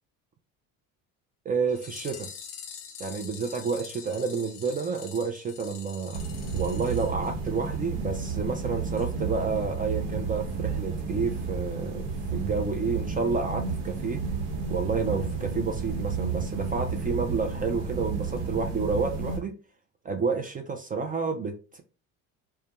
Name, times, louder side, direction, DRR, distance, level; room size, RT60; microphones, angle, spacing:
voice 1, 1.5-2.3 3.0-6.2 6.5-12.1 12.3-14.2 14.7-19.6 20.0-21.8, right 4 dB, 25° right, 0.3 m, -30 dB
sound 1, 1.7-7.9 8.1-8.2 8.5-8.6 9.0-9.1 9.4-9.5, left 7 dB, 45° left, 0.5 m, -45 dB
sound 2, 6.1-19.4, right 4 dB, 65° right, 1.0 m, -32 dB
2.2 x 2.2 x 2.9 m
supercardioid pair, 90°, 40 cm